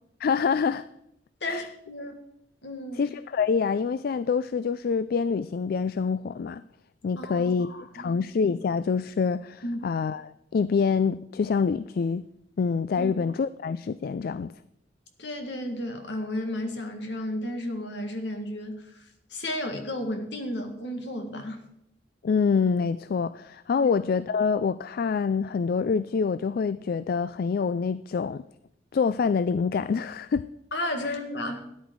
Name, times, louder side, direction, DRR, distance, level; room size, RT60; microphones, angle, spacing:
voice 1, 0.2-0.8 1.4-1.6 2.9-6.6 7.0-12.3 12.6-14.5 22.2-28.4 28.9-30.5 31.1-31.2, left 5 dB, 55° left, 15 dB, 0.3 m, -26 dB
voice 2, 1.4-2.2 2.6-3.1 7.2-8.1 9.6-9.8 13.0-13.1 15.2-21.6 23.8-23.9 30.7-31.7, left 1 dB, 70° left, 5 dB, 1.9 m, -33 dB
13.5 x 10.0 x 4.7 m, 0.80 s
head